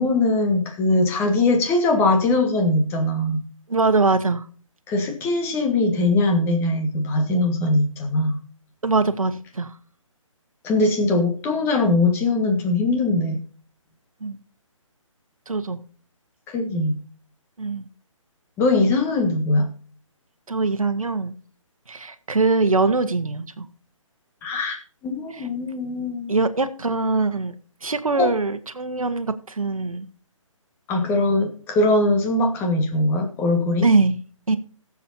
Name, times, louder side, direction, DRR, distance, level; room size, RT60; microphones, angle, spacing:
voice 1, 0.0-3.4 4.9-8.4 10.6-13.4 16.5-17.0 18.6-19.7 24.4-26.3 28.2-28.3 30.9-33.9, left 2 dB, 15° left, 4 dB, 1.5 m, -21 dB
voice 2, 3.7-4.5 8.8-9.7 14.2-14.4 15.5-15.8 17.6-17.9 20.5-21.4 21.9-23.7 25.3-25.5 26.3-27.5 27.8-30.1 33.8-34.2 34.5-34.6, right 3 dB, 90° right, 9 dB, 1.1 m, -22 dB
20.0 x 7.4 x 2.7 m, 0.42 s
figure-of-eight pair, 150°, 17 cm